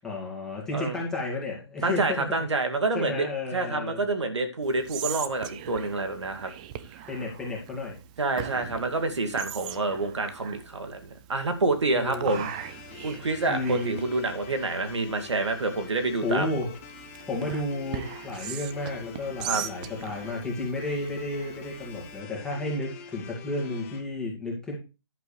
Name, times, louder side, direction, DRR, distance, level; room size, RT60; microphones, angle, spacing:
voice 1, 0.0-2.3 2.9-4.0 7.1-8.0 11.9-12.4 13.5-14.0 16.2-16.7 17.3-24.8, left 2 dB, 5° left, -4 dB, 2.4 m, -32 dB
voice 2, 1.8-6.5 8.2-12.5 13.0-16.5 19.4-19.7, right 3 dB, 90° right, 6 dB, 2.4 m, -28 dB
Whispering, 4.6-22.2, right 11 dB, 15° right, 0.4 m, -41 dB
sound 1, 12.3-24.0, left 7 dB, 30° left, 1.3 m, -46 dB
11.0 x 8.1 x 3.4 m, 0.29 s
hypercardioid pair, 160°, 14 cm